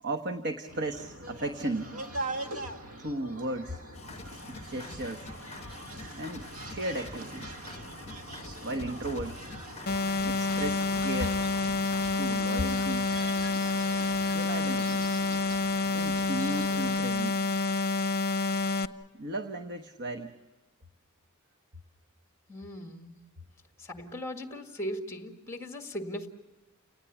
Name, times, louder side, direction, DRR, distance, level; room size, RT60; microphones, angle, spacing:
voice 1, 0.0-2.2 2.5-2.6 3.0-3.8 4.4-5.3 6.1-7.6 8.4-9.5 10.2-11.4 12.1-13.1 14.3-15.0 15.9-17.5 19.1-20.4, right 1 dB, 55° right, 6 dB, 1.1 m, -35 dB
sound 1, 0.7-17.0, right 2 dB, 85° right, 1.7 m, -42 dB
sound 2, 3.9-12.2, left 3 dB, 30° left, 1.1 m, -46 dB
sound 3, 9.9-18.9, left 3 dB, 45° left, 0.8 m, -28 dB
voice 2, 22.5-23.2 23.8-26.3, equal, 15° left, 5 dB, 1.8 m, -38 dB
30.0 x 19.0 x 7.0 m, 1.2 s
head